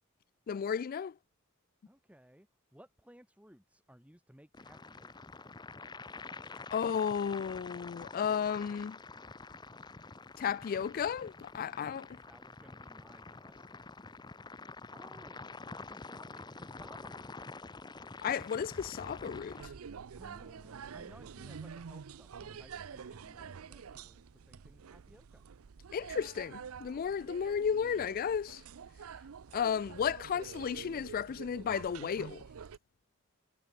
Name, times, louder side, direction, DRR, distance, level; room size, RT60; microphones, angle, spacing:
voice 1, 0.5-1.2 6.7-9.0 10.4-12.0 18.2-19.7 25.9-28.6 29.5-32.4, left 7 dB, 45° left, 0.3 m, -33 dB
voice 2, 1.9-5.2 11.6-13.7 14.9-15.4 15.7-17.6 20.1-25.4, equal, 5° right, 6.8 m, -59 dB
sound 1, 4.5-19.7, left 3 dB, 20° left, 0.7 m, -48 dB
sound 2, 18.7-22.7 23.0-24.1 24.4-25.2 25.5-25.6, right 1 dB, 50° right, 2.0 m, -59 dB
sound 3, 19.6-32.8, right 6 dB, 90° right, 0.5 m, -48 dB
head